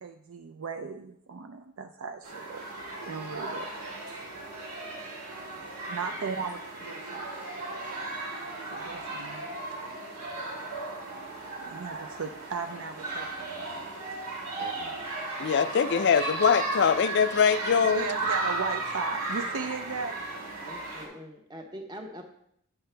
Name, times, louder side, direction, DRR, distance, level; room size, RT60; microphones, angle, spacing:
voice 1, 0.0-3.7 5.9-7.3 8.7-9.5 11.6-13.9 17.8-20.2, right 4 dB, 60° right, 6 dB, 0.4 m, -37 dB
sound 1, 2.2-21.1, right 2 dB, 85° right, 2.3 m, -35 dB
voice 2, 14.6-14.9 15.4-18.0, left 6 dB, 50° left, 12 dB, 0.4 m, -23 dB
voice 3, 20.6-22.2, equal, 20° right, 3 dB, 0.9 m, -43 dB
9.6 x 5.7 x 3.3 m, 0.72 s
head